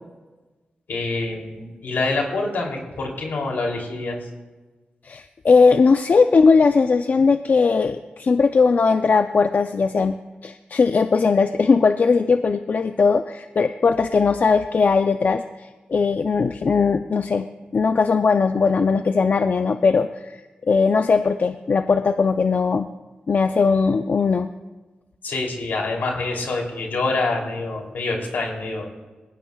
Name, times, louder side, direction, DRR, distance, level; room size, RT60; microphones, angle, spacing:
voice 1, 0.9-4.2 25.2-28.9, left 3 dB, 80° left, 0 dB, 3.0 m, -26 dB
voice 2, 5.0-17.5 17.7-20.4 20.7-22.9 23.3-24.5, left 4 dB, 55° left, 8 dB, 0.5 m, -19 dB
20.0 x 16.5 x 2.3 m, 1.2 s
cardioid pair, 60°, 3 cm